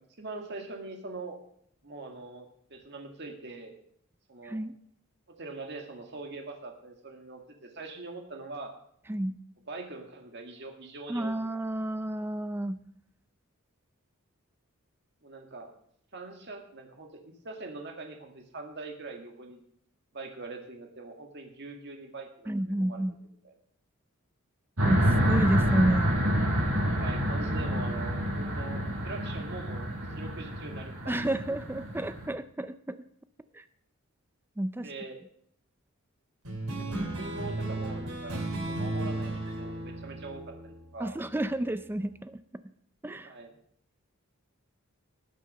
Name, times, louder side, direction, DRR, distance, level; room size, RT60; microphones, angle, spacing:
voice 1, 0.2-1.4 1.8-3.8 4.3-4.6 5.3-8.7 9.7-11.4 15.2-15.7 16.1-17.1 17.4-19.6 20.1-23.0 23.4-23.5 27.0-31.2 34.8-35.2 36.7-41.2 43.2-43.5, right 3 dB, 50° right, 3 dB, 1.8 m, -43 dB
voice 2, 4.4-4.7 9.1-9.4 11.1-12.8 22.5-23.2 24.8-26.2 31.1-33.0 33.5-33.6 34.6-34.9 41.0-42.7 43.0-43.3, right 1 dB, 10° right, 12 dB, 0.4 m, -31 dB
sound 1, 24.8-32.3, equal, 70° right, 5.0 m, -28 dB
sound 2, 36.4-41.4, right 2 dB, 90° right, 3.6 m, -35 dB
18.5 x 6.6 x 5.4 m, 0.66 s
head